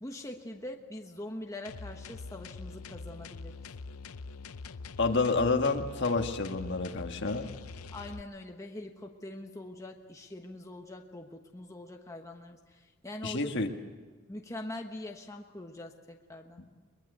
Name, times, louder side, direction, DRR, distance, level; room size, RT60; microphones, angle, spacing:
voice 1, 0.0-3.5 7.9-13.5 14.3-16.6, left 1 dB, 15° left, 3 dB, 1.2 m, -43 dB
sound 1, 1.6-8.2, left 4 dB, 80° left, 0.7 m, -44 dB
voice 2, 5.0-7.5 13.2-13.7 16.6-16.7, left 3 dB, 55° left, 5 dB, 1.5 m, -29 dB
22.5 x 22.0 x 8.0 m, 1.4 s
head